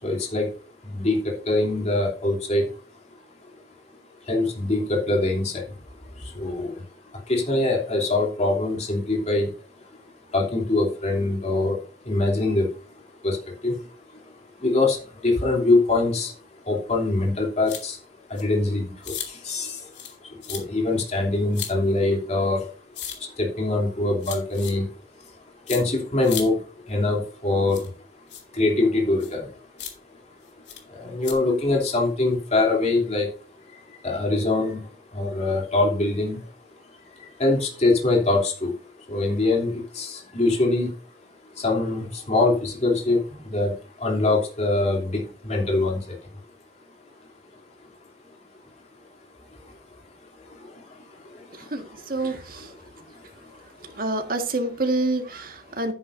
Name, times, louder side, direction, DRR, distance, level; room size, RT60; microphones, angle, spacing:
voice 1, 0.0-0.5 0.8-2.8 3.5-3.6 4.2-9.8 10.3-12.9 13.2-13.8 14.1-16.4 16.6-18.0 18.3-22.7 23.2-25.3 25.7-27.9 28.5-29.6 30.9-33.3 33.7-36.5 37.1-38.8 39.1-40.9 41.4-46.2 49.5-49.8 50.4-54.0, left 2 dB, 40° left, 3.0 m, -24 dB
sound 1, 17.7-17.8 18.4-18.5 19.0-19.3 19.9-20.2 20.4-20.6 21.5-21.7 22.9-23.2 24.2-24.7 25.7-25.8 26.2-26.4 27.7-27.9 28.3-28.4 29.2-29.3 29.8-29.9 30.7-30.8 31.2-31.3, left 9 dB, 75° left, 2.8 m, -34 dB
voice 2, 52.1-52.7 54.0-55.9, right 2 dB, 55° right, 1.7 m, -27 dB
11.5 x 9.9 x 2.6 m
head